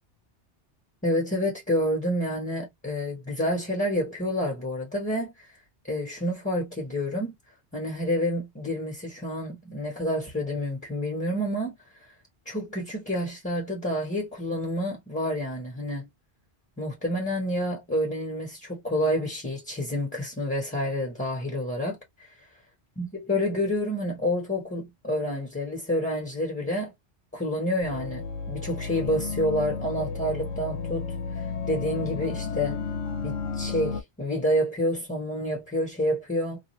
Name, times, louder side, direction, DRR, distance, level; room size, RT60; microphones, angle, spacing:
voice 1, 1.0-5.5 5.9-7.3 7.7-11.7 12.4-16.1 16.8-22.0 23.0-26.9 27.3-31.1 31.7-32.8 33.2-36.6, equal, 10° left, 0.9 m, -28 dB
sound 1, 27.8-34.0, left 5 dB, 80° left, 0.8 m, -32 dB
2.4 x 2.4 x 3.0 m
omnidirectional pair, 1.1 m